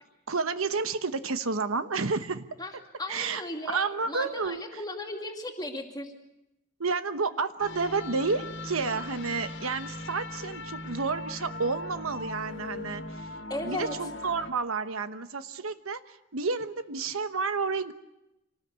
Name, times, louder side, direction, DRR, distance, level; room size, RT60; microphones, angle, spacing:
voice 1, 0.3-2.5 3.1-4.8 6.8-13.0 13.6-17.9, right 4 dB, 80° right, 10 dB, 1.1 m, -30 dB
voice 2, 2.6-3.8 4.1-6.1 13.5-13.9, left 1 dB, 20° left, 3 dB, 2.5 m, -36 dB
sound 1, 7.6-14.5, left 2 dB, 55° left, 1.5 m, -39 dB
26.5 x 19.0 x 8.2 m, 0.91 s
head